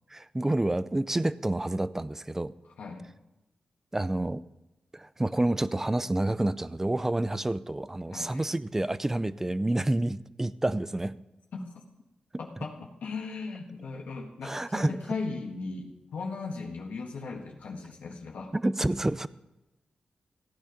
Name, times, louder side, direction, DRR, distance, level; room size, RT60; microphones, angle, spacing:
voice 1, 0.1-2.5 3.9-4.4 4.9-11.2 14.4-14.9 18.5-19.3, right 1 dB, 15° right, 16 dB, 0.5 m, -28 dB
voice 2, 2.8-3.1 8.1-8.4 11.5-11.6 12.4-18.5, left 4 dB, 85° left, -1 dB, 1.6 m, -37 dB
15.5 x 9.7 x 5.2 m, 0.96 s
cardioid pair, 85°, 3 cm